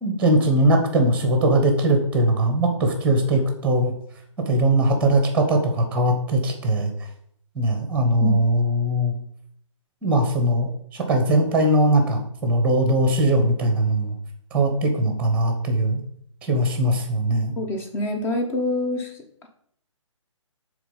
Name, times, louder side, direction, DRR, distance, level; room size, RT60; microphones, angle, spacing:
voice 1, 0.0-3.9 4.5-6.9 7.5-9.2 10.0-14.2 14.5-16.0 16.4-17.5, right 1 dB, 5° right, 5 dB, 1.2 m, -20 dB
voice 2, 17.6-19.1 19.4-19.5, left 1 dB, 15° left, 3 dB, 0.9 m, -26 dB
7.1 x 3.6 x 5.6 m, 0.68 s
figure-of-eight pair, 150°, 17 cm